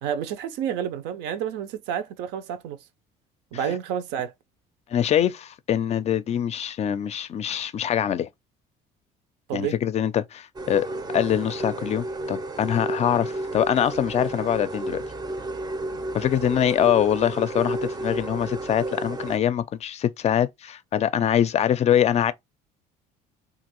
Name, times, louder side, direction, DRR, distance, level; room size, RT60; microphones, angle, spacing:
voice 1, 0.0-2.8 3.5-4.3 9.5-9.8, right 9 dB, 85° right, 0.6 m, -29 dB
voice 2, 4.9-8.3 9.5-10.9 11.1-15.0 16.1-22.3, left 10 dB, 40° left, 0.4 m, -24 dB
sound 1, 10.6-19.4, right 2 dB, 25° right, 0.5 m, -32 dB
2.9 x 2.5 x 3.0 m
cardioid pair, 110°, 17 cm